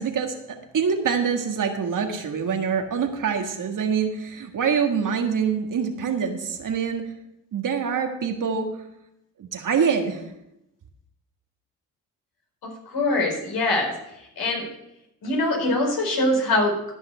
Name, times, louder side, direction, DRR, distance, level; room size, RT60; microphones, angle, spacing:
voice 1, 0.0-7.0 7.5-8.7 9.4-10.2, right 6 dB, 50° right, 4 dB, 1.8 m, -25 dB
voice 2, 12.6-13.9 14.4-14.6 15.2-16.9, left 2 dB, 60° left, 0 dB, 4.7 m, -23 dB
13.5 x 5.6 x 6.7 m, 0.85 s
supercardioid pair, 60°, 41 cm